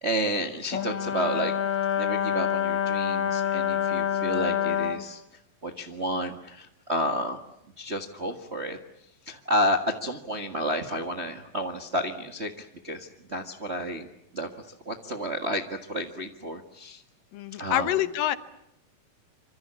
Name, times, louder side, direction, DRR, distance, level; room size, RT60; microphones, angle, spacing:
voice 1, 0.0-1.5 2.0-5.2 5.6-7.4 7.8-8.8 9.2-14.1 14.3-17.0 17.6-17.9, equal, 35° right, 5 dB, 1.0 m, -31 dB
Brass instrument, 0.7-5.1, left 9 dB, 50° left, 1.5 m, -27 dB
voice 2, 17.3-18.4, left 12 dB, 75° left, 12 dB, 2.8 m, -26 dB
26.0 x 26.0 x 8.6 m, 0.78 s
omnidirectional pair, 4.0 m